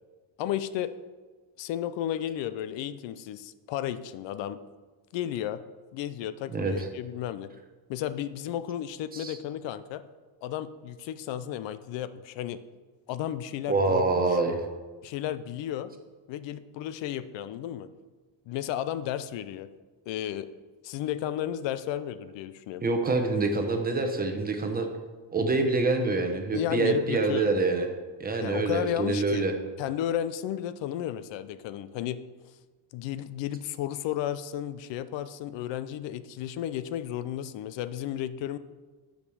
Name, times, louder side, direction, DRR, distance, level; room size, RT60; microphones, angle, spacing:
voice 1, 0.4-0.9 1.6-4.6 5.1-5.6 5.9-7.5 7.9-10.0 10.4-12.6 13.1-14.2 15.0-15.9 16.3-17.9 18.5-19.7 20.1-20.5 20.8-22.8 26.5-27.5 28.4-29.5 29.8-32.2 32.9-38.6, left 11 dB, 70° left, 14 dB, 0.6 m, -33 dB
voice 2, 6.5-6.9 9.1-9.4 13.7-14.6 22.8-24.9 25.3-27.9 28.2-29.5, right 3 dB, 20° right, 5 dB, 0.8 m, -26 dB
10.0 x 5.2 x 6.9 m, 1.4 s
cardioid pair, 175°, 46 cm